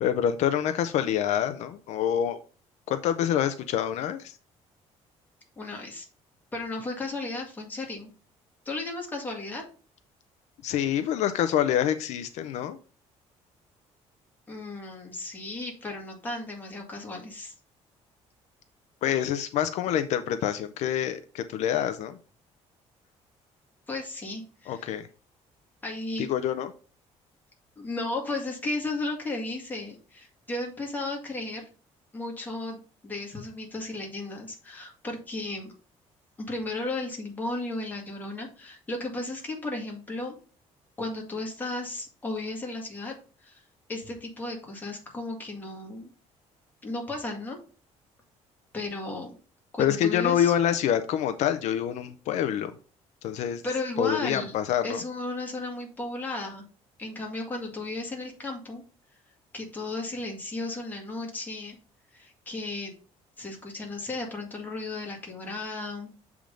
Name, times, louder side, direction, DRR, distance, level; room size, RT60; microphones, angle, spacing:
voice 1, 0.0-2.4 2.9-4.4 10.6-12.8 19.0-22.2 24.7-25.1 26.2-26.7 49.8-52.7 53.2-53.6 54.0-55.0, left 10 dB, 70° left, 10 dB, 0.6 m, -26 dB
voice 2, 5.6-6.1 6.5-8.1 8.7-9.6 14.5-17.5 23.9-24.9 25.8-26.3 27.8-31.6 32.1-35.7 36.4-40.4 41.0-43.1 43.4-43.6 43.9-46.1 46.8-47.6 48.7-49.4 49.7-50.5 53.6-54.5 54.8-56.7 57.0-58.8 59.5-61.8 62.1-62.9 63.4-66.1, left 2 dB, 15° left, 0 dB, 1.9 m, -34 dB
7.5 x 3.6 x 5.0 m, 0.37 s
cardioid pair, 165°, 12 cm